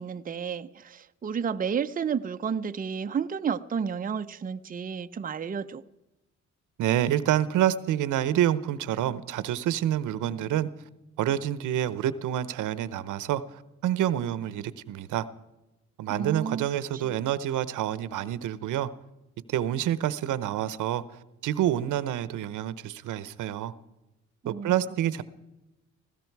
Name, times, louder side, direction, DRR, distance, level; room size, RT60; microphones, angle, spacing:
voice 1, 0.0-5.8 16.1-16.7 17.1-17.2 24.4-24.7, right 6 dB, 30° right, 9 dB, 0.6 m, -31 dB
voice 2, 6.8-10.7 11.2-15.3 16.0-18.9 19.5-21.0 21.4-23.7 24.5-25.2, right 11 dB, 80° right, 16 dB, 0.9 m, -27 dB
19.0 x 16.0 x 4.7 m, 0.98 s
cardioid pair, 90°, 30 cm